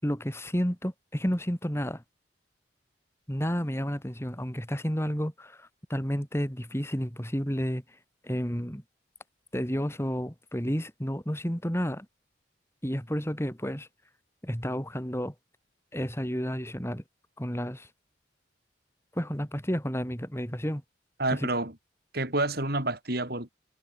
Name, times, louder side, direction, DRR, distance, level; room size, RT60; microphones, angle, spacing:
voice 1, 0.0-2.0 3.3-7.8 8.2-8.8 9.5-12.1 12.8-13.9 14.4-15.3 15.9-17.0 17.4-17.9 19.1-20.8 21.3-21.5, equal, 15° left, 6.1 m, -31 dB
voice 2, 21.2-21.7 22.1-23.5, right 2 dB, 55° right, 6.1 m, -28 dB
head